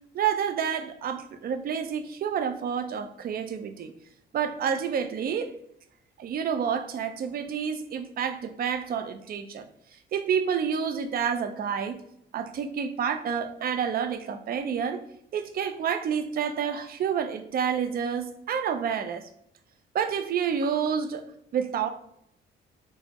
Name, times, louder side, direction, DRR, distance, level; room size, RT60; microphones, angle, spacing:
voice 1, 0.1-3.9 4.3-5.5 6.2-9.7 10.1-12.0 12.3-15.0 15.3-19.3 19.9-21.3 21.5-21.9, right 7 dB, 50° right, 8 dB, 0.4 m, -29 dB
4.2 x 2.0 x 2.8 m, 0.75 s
cardioid pair, 90°, 20 cm